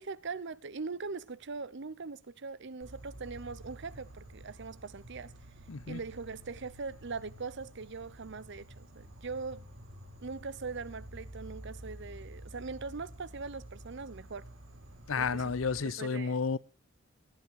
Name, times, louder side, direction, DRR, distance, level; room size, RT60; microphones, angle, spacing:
voice 1, 0.0-5.3 5.9-9.6 10.2-14.4 15.2-15.5 15.8-16.4, right 4 dB, 60° right, 0.8 m, -41 dB
Insect, 2.8-15.8, right 1 dB, 85° right, 5.3 m, -50 dB
voice 2, 5.7-6.0 15.1-16.6, left 5 dB, 85° left, 0.7 m, -31 dB
18.0 x 11.0 x 4.8 m
head